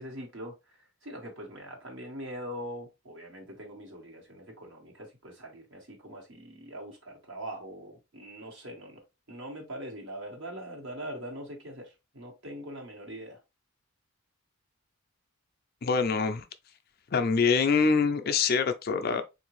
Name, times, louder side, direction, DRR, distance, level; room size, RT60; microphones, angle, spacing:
voice 1, 0.0-9.0 9.3-13.4, equal, 55° right, 1.3 m, -42 dB
voice 2, 15.8-16.4 17.1-19.2, left 5 dB, 45° left, 0.4 m, -25 dB
3.8 x 2.6 x 3.0 m
head